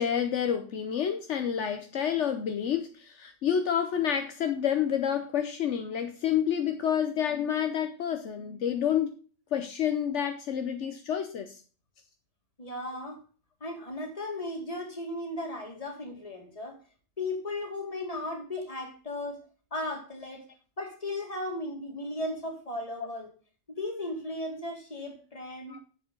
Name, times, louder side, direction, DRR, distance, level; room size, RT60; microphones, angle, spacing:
voice 1, 0.0-9.2 9.5-11.6 23.0-23.1 25.7-25.8, left 9 dB, 70° left, 7 dB, 1.1 m, -29 dB
voice 2, 12.6-13.2 13.6-16.8 17.2-19.4 19.7-20.4 20.8-23.3 23.7-25.8, left 1 dB, 30° left, 2 dB, 2.4 m, -36 dB
7.6 x 6.9 x 5.3 m, 0.39 s
omnidirectional pair, 1.3 m